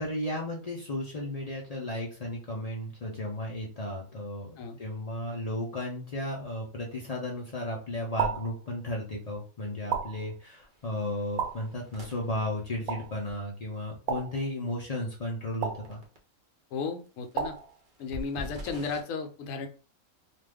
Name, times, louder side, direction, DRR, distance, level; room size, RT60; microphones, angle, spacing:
voice 1, 0.0-16.0, left 1 dB, 50° left, -2 dB, 0.4 m, -34 dB
sound 1, 8.2-8.6 9.9-10.3 11.4-11.7 12.9-13.2 14.1-14.5 15.6-16.0 17.4-17.8, right 7 dB, 85° right, 1.0 m, -32 dB
sound 2, 9.2-9.4 9.7-10.0 10.5-13.3 15.5-15.6 15.8-16.2 17.1-19.0, equal, 45° right, 0.7 m, -45 dB
voice 2, 16.7-17.5 18.0-19.7, left 5 dB, 75° left, 6 dB, 0.9 m, -34 dB
2.5 x 2.4 x 3.4 m, 0.36 s
omnidirectional pair, 1.5 m